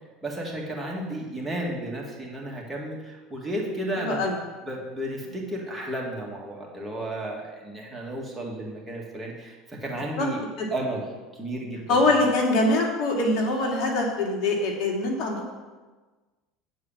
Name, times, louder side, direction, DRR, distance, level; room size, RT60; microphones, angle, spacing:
voice 1, 0.2-4.2 4.7-10.4 10.7-11.0 11.3-12.0, right 1 dB, 10° right, -3 dB, 1.9 m, -33 dB
voice 2, 4.0-4.4 10.2-10.3 10.6-10.7 11.9-15.5, left 2 dB, 60° left, -1 dB, 2.2 m, -23 dB
8.4 x 4.8 x 7.4 m, 1.3 s
supercardioid pair, 110°, 0 cm